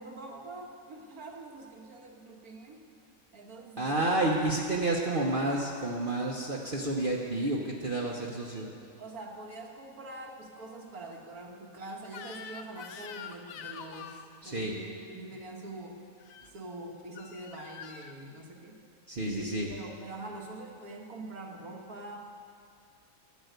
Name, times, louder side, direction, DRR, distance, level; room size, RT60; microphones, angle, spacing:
voice 1, 0.0-2.8 3.3-4.1 8.1-8.2 8.5-8.7 9.0-16.1 16.5-18.8 19.2-22.3, right 2 dB, 80° right, 1 dB, 2.1 m, -44 dB
voice 2, 3.8-8.7 14.4-14.7 19.1-19.7, right 2 dB, 40° right, -3 dB, 1.2 m, -30 dB
Crying sobbing / Screech, 12.1-14.3 16.2-16.5 17.2-18.1, left 7 dB, 70° left, 1.1 m, -45 dB
12.5 x 9.8 x 8.0 m, 2.4 s
omnidirectional pair, 1.6 m